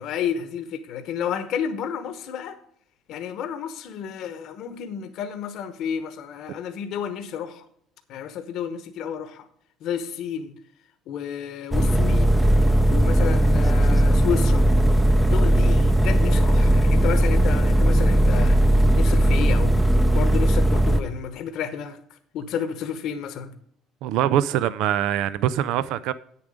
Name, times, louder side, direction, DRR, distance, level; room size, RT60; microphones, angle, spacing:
voice 1, 0.0-2.6 3.1-7.6 8.1-9.5 9.8-10.5 11.1-12.4 12.9-14.7 15.2-19.9 20.1-22.0 22.3-23.5, left 8 dB, 65° left, 1.0 m, -31 dB
sound 1, 11.7-21.0, right 1 dB, 5° right, 0.6 m, -18 dB
voice 2, 24.0-26.1, right 11 dB, 75° right, 0.4 m, -23 dB
8.9 x 7.0 x 5.0 m
cardioid pair, 130°, 0 cm